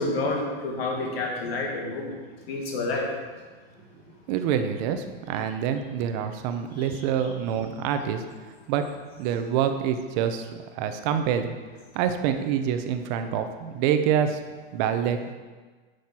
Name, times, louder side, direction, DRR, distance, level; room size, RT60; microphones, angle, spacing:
voice 1, 0.0-2.2 2.5-3.1, left 2 dB, 75° left, -1 dB, 1.9 m, -28 dB
voice 2, 4.3-8.2 8.7-8.8 9.2-11.6 11.9-14.4 14.7-15.3, right 8 dB, 45° right, 8 dB, 0.9 m, -26 dB
9.7 x 6.6 x 4.4 m, 1.4 s
supercardioid pair, 145°, 31 cm